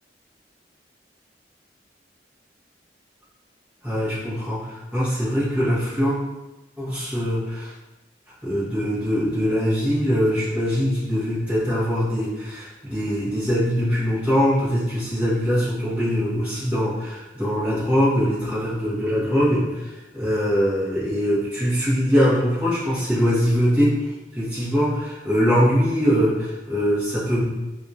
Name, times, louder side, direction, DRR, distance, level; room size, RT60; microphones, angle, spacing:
voice 1, 3.8-6.2 6.8-7.7 8.4-27.4, equal, 10° right, -11 dB, 1.5 m, -22 dB
4.0 x 2.6 x 2.9 m, 1.0 s
head